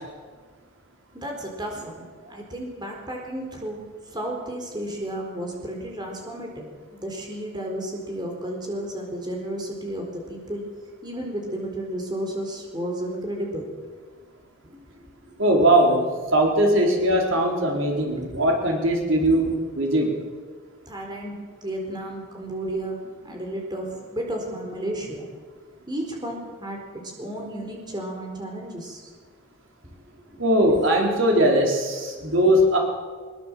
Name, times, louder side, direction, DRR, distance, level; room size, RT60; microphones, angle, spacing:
voice 1, 1.1-3.8 4.1-10.6 11.0-13.7 14.6-15.7 18.2-18.6 19.2-19.6 20.9-21.3 21.6-25.3 25.9-29.1 30.3-30.8 32.2-32.8, right 1 dB, 20° right, 1 dB, 4.3 m, -33 dB
voice 2, 15.4-20.1 30.4-32.8, right 1 dB, 70° right, 1 dB, 4.2 m, -20 dB
22.5 x 22.0 x 7.6 m, 1.5 s
head